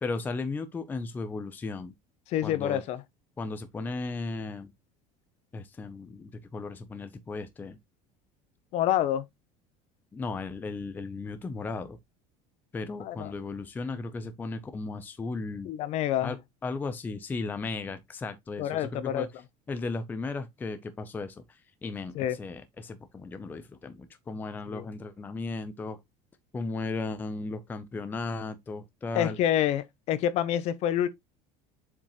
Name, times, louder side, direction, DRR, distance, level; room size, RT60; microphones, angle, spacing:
voice 1, 0.0-1.9 2.4-2.8 3.4-4.7 5.5-7.8 10.1-12.0 12.7-15.7 16.2-16.4 16.6-19.3 19.7-26.0 26.5-29.4, left 3 dB, 10° left, 0.6 m, -35 dB
voice 2, 2.3-3.0 8.7-9.2 13.0-13.3 15.6-16.4 18.6-19.3 22.1-22.4 24.7-24.8 29.1-31.1, left 11 dB, 45° left, 0.8 m, -27 dB
7.2 x 5.1 x 3.0 m
cardioid pair, 170°, 16 cm